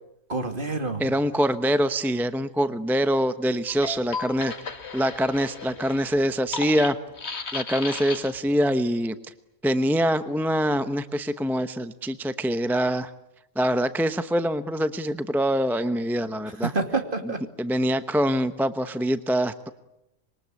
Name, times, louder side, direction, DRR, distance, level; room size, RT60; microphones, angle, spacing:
voice 1, 0.3-1.0 16.6-17.4, right 3 dB, 45° right, 6 dB, 2.8 m, -27 dB
voice 2, 1.0-4.5 4.9-7.0 7.5-9.3 9.6-13.1 13.6-16.7 17.6-19.7, equal, ahead, 10 dB, 0.8 m, -24 dB
sound 1, 3.7-8.5, left 4 dB, 60° left, 2.0 m, -35 dB
26.0 x 23.0 x 9.5 m, 0.88 s
omnidirectional pair, 1.3 m